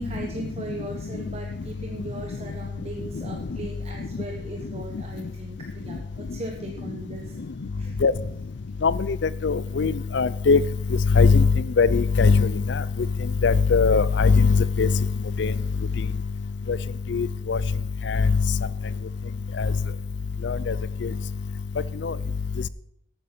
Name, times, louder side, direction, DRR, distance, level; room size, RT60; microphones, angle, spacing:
voice 1, 0.0-7.4 7.7-8.0, right 1 dB, 35° right, 1 dB, 1.3 m, -38 dB
voice 2, 8.8-10.6 11.1-11.5 11.8-12.8 13.4-15.0 15.4-15.5 16.7-16.8 17.1-17.6 18.1-18.3 19.6-19.7 20.4-20.7 21.0-21.1 22.0-22.1, left 4 dB, 85° left, 18 dB, 0.5 m, -20 dB
12.5 x 9.1 x 6.0 m, 0.74 s
head